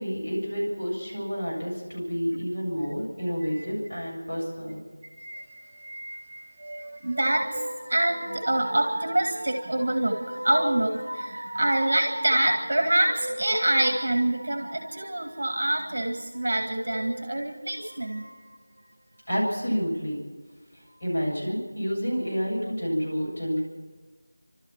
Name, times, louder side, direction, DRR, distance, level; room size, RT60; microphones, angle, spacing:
voice 1, 0.0-4.8 19.3-20.2 21.0-23.6, equal, 30° left, -5 dB, 7.8 m, -29 dB
voice 2, 5.2-18.5, right 1 dB, 35° right, 4 dB, 2.0 m, -26 dB
29.0 x 13.0 x 7.4 m, 1.4 s
figure-of-eight pair, 180°, 0 cm